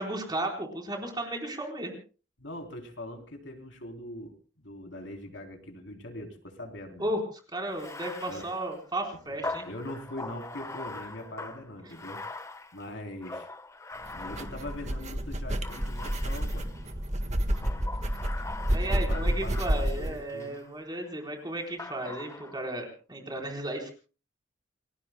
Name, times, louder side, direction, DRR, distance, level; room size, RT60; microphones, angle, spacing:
voice 1, 0.0-2.0 7.0-7.2 7.5-9.7 17.4-17.7 18.7-23.9, right 1 dB, 25° right, 1 dB, 4.2 m, -34 dB
voice 2, 2.4-7.1 8.2-8.5 9.1-12.2 12.7-13.5 14.1-16.7 18.9-20.6, left 1 dB, 75° left, 3 dB, 3.5 m, -42 dB
Bathtub (filling or washing), 7.7-15.1 15.6-16.9 17.5-20.6 21.8-22.8, left 2 dB, 15° left, 1.1 m, -42 dB
sound 1, 14.0-20.1, equal, 40° right, 1.5 m, -30 dB
29.5 x 21.0 x 2.2 m, 0.37 s
head